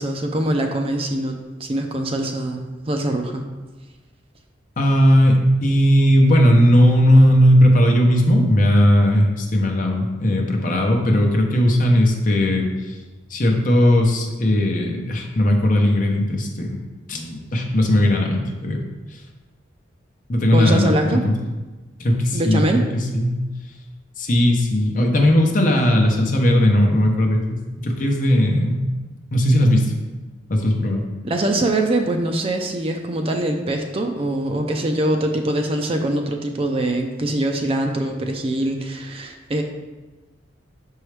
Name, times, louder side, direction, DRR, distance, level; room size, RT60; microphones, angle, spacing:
voice 1, 0.0-3.4 20.5-21.2 22.3-22.9 31.2-39.6, right 1 dB, 30° right, 4 dB, 0.4 m, -23 dB
voice 2, 4.8-12.7 13.3-16.8 17.1-18.8 20.3-21.4 22.0-22.7 22.9-23.4 24.2-28.8 29.3-29.9 30.5-31.0, equal, 45° left, 2 dB, 0.8 m, -17 dB
6.1 x 4.6 x 3.3 m, 1.2 s
head